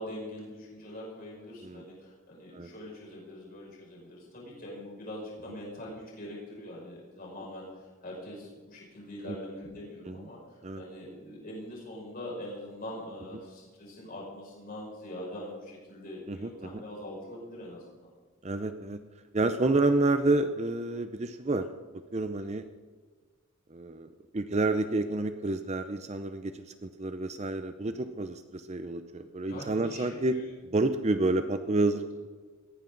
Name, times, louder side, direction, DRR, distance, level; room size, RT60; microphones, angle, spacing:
voice 1, 0.0-18.1 26.5-26.6 27.9-28.0 29.5-30.5, left 1 dB, 45° left, -4 dB, 6.1 m, -43 dB
voice 2, 16.3-16.8 18.4-19.0 19.3-21.7 22.1-22.6 23.7-30.3 30.7-32.3, right 2 dB, 30° right, 9 dB, 0.6 m, -29 dB
20.0 x 15.0 x 4.0 m, 1.4 s
head